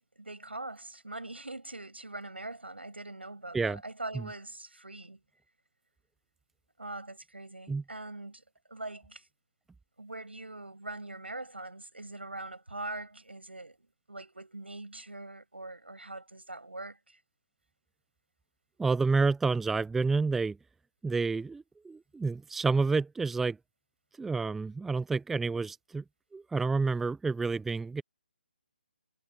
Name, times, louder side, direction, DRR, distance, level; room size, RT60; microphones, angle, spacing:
voice 1, 0.0-5.2 6.8-8.4 8.7-9.3 10.0-17.2, right 2 dB, 90° right, 6.6 m, -42 dB
voice 2, 18.8-20.6 21.0-23.6 24.2-26.0 26.3-28.0, right 4 dB, 5° right, 0.4 m, -29 dB
figure-of-eight pair, 145°, 6 cm